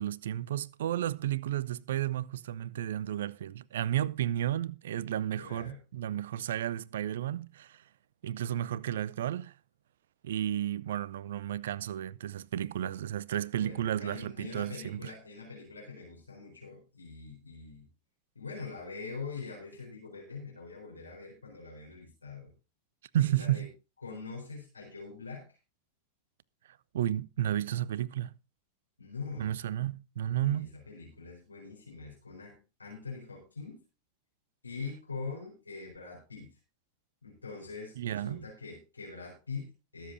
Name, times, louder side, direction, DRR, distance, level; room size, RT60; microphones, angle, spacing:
voice 1, 0.0-7.8 8.2-9.5 10.2-15.1 23.1-23.7 26.9-28.3 29.4-30.7 38.0-38.4, right 12 dB, 60° right, 0.5 m, -32 dB
voice 2, 5.4-5.8 13.6-17.9 18.3-22.5 23.2-23.7 24.0-25.6 29.0-29.5 30.2-33.8 34.6-36.6 37.2-40.1, left 4 dB, 80° left, 4.3 m, -43 dB
21.5 x 7.4 x 2.7 m
figure-of-eight pair, 90°, 0 cm